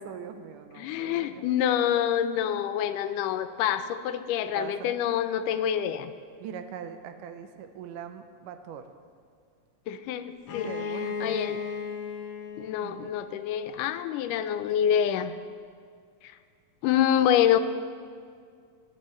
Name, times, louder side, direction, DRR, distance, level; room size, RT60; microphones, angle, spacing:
voice 1, 0.0-1.5 4.6-5.0 6.4-8.9 10.6-11.6 12.8-13.1, right 7 dB, 90° right, 8 dB, 2.3 m, -41 dB
voice 2, 0.8-6.1 9.9-10.7 11.2-11.6 12.6-15.3 16.2-16.3 16.8-17.6, left 10 dB, 90° left, 10 dB, 2.2 m, -26 dB
Bowed string instrument, 10.4-14.1, left 6 dB, 70° left, 1.2 m, -36 dB
24.0 x 9.3 x 3.1 m, 2.1 s
omnidirectional pair, 3.6 m